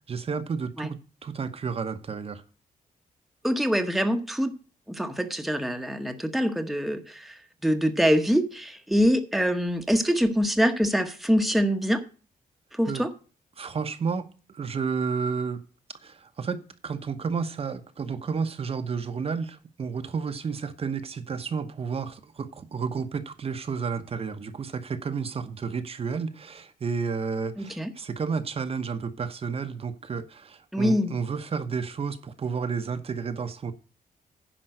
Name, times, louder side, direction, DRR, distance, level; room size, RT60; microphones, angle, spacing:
voice 1, 0.1-2.4 12.9-13.1 13.6-15.6 15.9-33.7, right 5 dB, 40° right, 0.9 m, -31 dB
voice 2, 3.4-4.5 4.9-12.0 12.7-13.1 27.6-27.9 30.7-31.2, equal, ahead, 1.0 m, -24 dB
10.0 x 5.3 x 7.7 m
wide cardioid pair, 140°, 15 cm